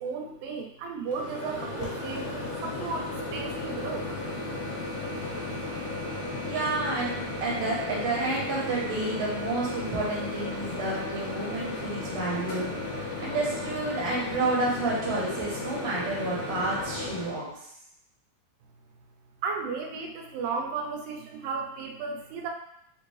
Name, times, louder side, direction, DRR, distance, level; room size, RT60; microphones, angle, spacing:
voice 1, 0.0-4.1 4.5-4.6 19.4-22.5, right 4 dB, 90° right, 1 dB, 2.3 m, -34 dB
Microwave oven, 1.1-17.3, left 2 dB, 80° left, 2.7 m, -35 dB
voice 2, 6.4-17.7, right 2 dB, 60° right, -5 dB, 1.7 m, -30 dB
5.8 x 2.6 x 3.1 m, 0.73 s
omnidirectional pair, 3.9 m